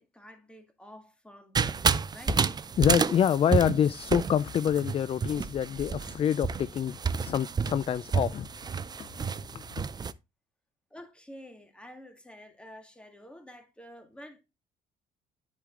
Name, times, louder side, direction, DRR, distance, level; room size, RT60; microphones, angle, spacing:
voice 1, 0.0-2.4 10.9-14.4, equal, 5° left, 1.9 m, -49 dB
sound 1, 1.5-10.1, right 6 dB, 25° right, 0.5 m, -30 dB
voice 2, 2.8-8.7 9.2-9.6, left 9 dB, 35° left, 0.4 m, -27 dB
10.0 x 5.0 x 3.8 m
cardioid pair, 110°, 17 cm